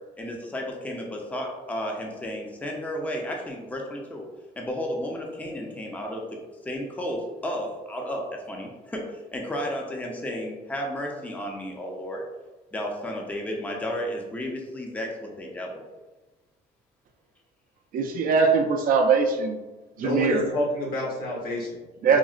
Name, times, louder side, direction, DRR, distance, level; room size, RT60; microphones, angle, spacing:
voice 1, 0.2-4.3 4.6-6.3 6.6-12.2 12.7-15.8, equal, 10° left, 0 dB, 0.5 m, -33 dB
voice 2, 17.9-19.6 20.0-20.4 22.0-22.2, right 5 dB, 55° right, 4 dB, 0.4 m, -21 dB
voice 3, 20.0-22.2, left 1 dB, 60° left, -2 dB, 1.0 m, -29 dB
3.7 x 2.0 x 2.4 m, 1.2 s
cardioid pair, 110°, 17 cm